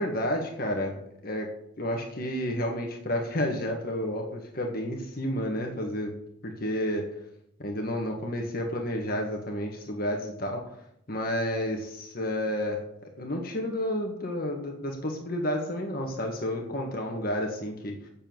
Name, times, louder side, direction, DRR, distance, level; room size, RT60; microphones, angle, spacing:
voice 1, 0.0-1.5 1.8-6.1 6.4-7.1 7.6-10.6 11.1-18.0, left 1 dB, 50° left, 1 dB, 1.7 m, -31 dB
8.8 x 7.0 x 7.1 m, 0.75 s
head